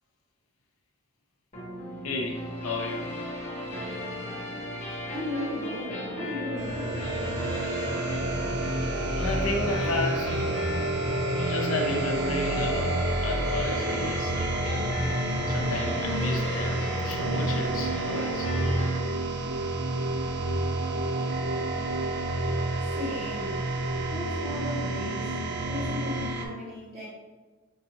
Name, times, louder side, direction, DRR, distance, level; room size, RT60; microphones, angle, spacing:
sound 1, 1.5-19.0, left 1 dB, 35° left, 1.1 m, -36 dB
voice 1, 2.0-3.2 9.1-10.4 11.4-14.3 15.5-18.5, left 2 dB, 75° left, 2 dB, 0.6 m, -32 dB
voice 2, 5.1-7.0 22.9-23.7 24.1-27.1, left 1 dB, 25° right, -11 dB, 1.2 m, -36 dB
sound 2, 6.6-26.5, right 2 dB, 55° right, 0.4 m, -29 dB
4.5 x 2.7 x 2.7 m, 1.3 s
head